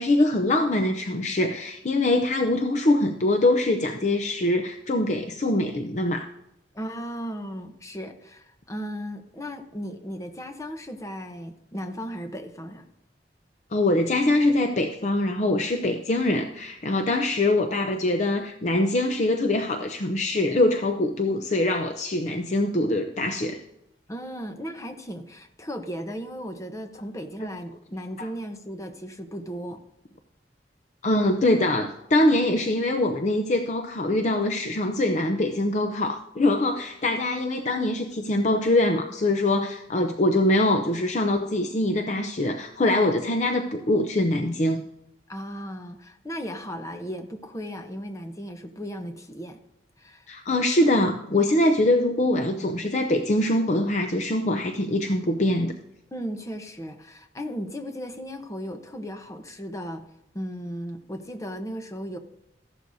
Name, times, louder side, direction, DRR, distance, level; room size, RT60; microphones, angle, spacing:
voice 1, 0.0-6.3 13.7-23.6 28.2-28.3 31.0-44.8 50.3-55.7, left 1 dB, 40° left, 6 dB, 0.6 m, -23 dB
voice 2, 6.7-12.8 24.1-29.8 45.3-49.6 50.0-50.3 56.1-60.0 60.3-62.2, equal, 20° left, 6 dB, 0.9 m, -36 dB
14.5 x 11.5 x 2.7 m, 0.85 s
head